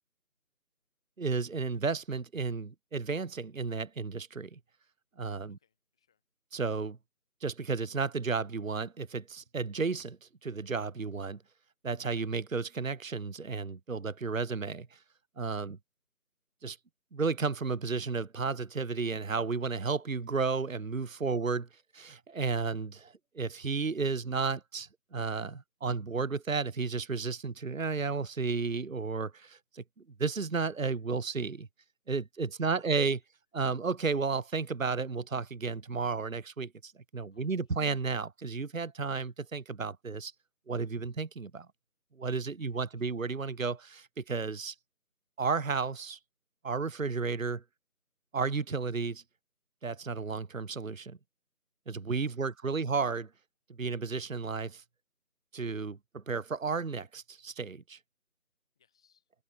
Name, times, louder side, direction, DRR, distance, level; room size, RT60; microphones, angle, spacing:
voice 1, 1.2-4.6 5.2-5.6 6.5-7.0 7.4-11.4 11.8-15.0 15.4-15.8 16.6-16.8 17.1-21.6 21.9-29.8 30.2-31.7 32.1-33.2 33.5-40.3 40.7-41.7 42.2-44.7 45.4-46.2 46.6-47.6 48.3-49.2 49.8-51.2 51.9-53.3 53.8-54.8 55.5-58.0, right 4 dB, 60° right, 0.9 m, -33 dB
voice 2, 5.5-6.2 21.2-21.4 27.5-27.7 32.6-32.9 37.3-37.9 42.7-43.2 52.2-52.9 58.7-59.3, left 8 dB, 5° left, 4.6 m, -75 dB
figure-of-eight pair, 180°, 44 cm